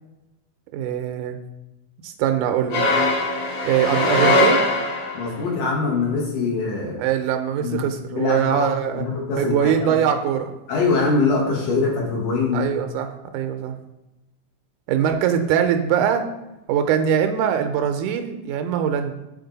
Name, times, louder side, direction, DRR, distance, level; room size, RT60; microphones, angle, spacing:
voice 1, 0.7-1.4 2.0-2.8 3.6-4.6 7.0-9.0 9.4-10.5 12.5-13.8 14.9-16.3 16.7-19.1, right 9 dB, 85° right, 6 dB, 2.1 m, -22 dB
sound 1, 2.7-5.3, left 1 dB, 55° left, 2.2 m, -20 dB
voice 2, 5.1-7.0 7.6-8.7 8.9-10.0 10.7-12.7, left 4 dB, 75° left, -3 dB, 3.3 m, -23 dB
8.0 x 4.5 x 4.0 m, 0.99 s
omnidirectional pair, 3.6 m